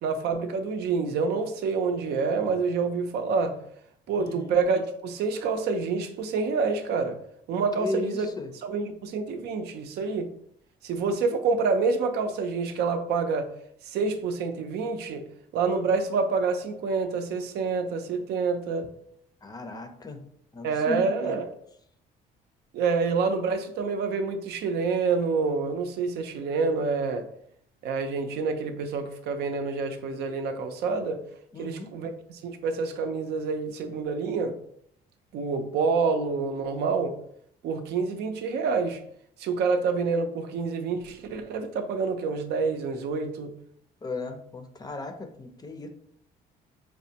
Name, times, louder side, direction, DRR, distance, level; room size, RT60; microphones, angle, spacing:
voice 1, 0.0-3.6 4.1-7.2 7.5-8.3 8.6-10.3 10.8-13.5 13.9-15.2 15.5-18.9 20.6-21.5 22.7-27.3 27.8-31.2 31.6-34.6 35.3-37.2 37.6-39.0 39.4-43.5, right 4 dB, 75° right, 0.5 m, -27 dB
voice 2, 4.2-4.6 7.8-8.5 19.4-20.2 20.5-21.3 31.5-31.9 44.0-45.9, left 2 dB, 25° left, 0.5 m, -36 dB
4.7 x 2.1 x 2.8 m
cardioid pair, 110°, 17 cm